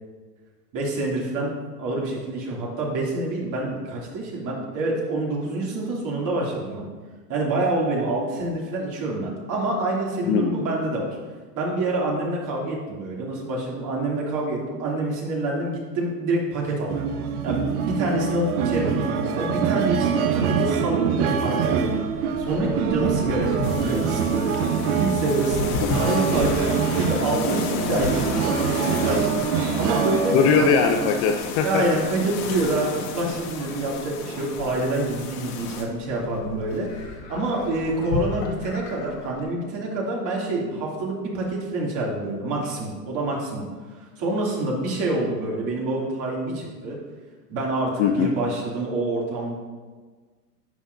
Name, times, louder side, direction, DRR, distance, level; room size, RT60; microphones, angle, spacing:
voice 1, 0.7-6.9 7.3-11.2 11.5-17.0 17.4-21.9 22.4-24.2 24.7-30.4 31.6-47.0 47.5-49.5, right 2 dB, 40° right, -3 dB, 2.9 m, -27 dB
voice 2, 10.3-10.7 30.3-31.8 48.0-48.3, left 7 dB, 30° left, 4 dB, 0.5 m, -20 dB
sound 1, 16.9-31.1, right 6 dB, 60° right, 1.0 m, -25 dB
Livestock farm animals working animals, 21.7-39.4, left 2 dB, 70° left, 2.0 m, -36 dB
sound 2, 23.6-35.8, left 5 dB, 55° left, 1.7 m, -33 dB
11.0 x 7.8 x 2.7 m, 1.4 s
hypercardioid pair, 110°, 49 cm